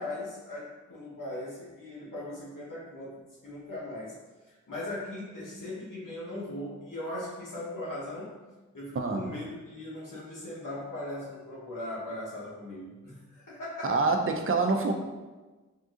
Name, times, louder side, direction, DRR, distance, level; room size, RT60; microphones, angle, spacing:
voice 1, 0.0-4.2 4.5-8.4 8.7-14.1, left 1 dB, 80° left, -6 dB, 1.0 m, -39 dB
voice 2, 8.9-9.3 13.8-14.9, right 3 dB, 45° right, 4 dB, 0.4 m, -26 dB
3.6 x 2.6 x 2.4 m, 1.2 s
wide cardioid pair, 55°, 32 cm